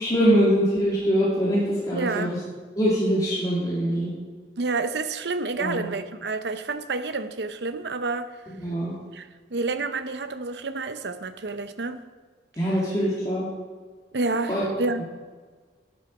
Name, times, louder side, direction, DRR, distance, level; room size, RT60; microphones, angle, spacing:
voice 1, 0.0-2.4 2.8-4.1 5.6-5.9 8.6-8.9 12.6-13.5 14.5-14.6 15.0-15.1, equal, 20° left, 2.4 m, -23 dB
voice 2, 1.9-2.4 4.6-8.4 9.1-12.0 14.1-15.0, right 3 dB, 70° right, 0.7 m, -29 dB
11.5 x 11.0 x 5.3 m
head